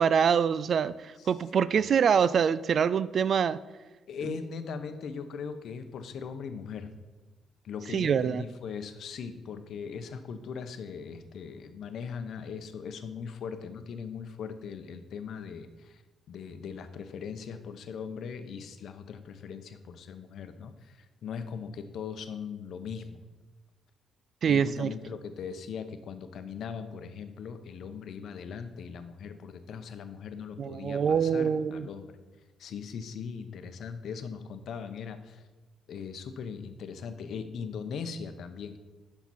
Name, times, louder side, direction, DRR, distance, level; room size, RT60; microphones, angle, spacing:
voice 1, 0.0-3.6 7.9-8.4 24.4-24.9 30.6-31.9, right 7 dB, 55° right, 17 dB, 0.3 m, -25 dB
voice 2, 4.1-6.9 7.6-16.0 16.3-23.2 24.4-32.2 32.6-35.4 35.9-38.8, left 6 dB, 65° left, 9 dB, 0.7 m, -39 dB
10.5 x 5.9 x 4.2 m, 1.2 s
cardioid pair, 90°, 0 cm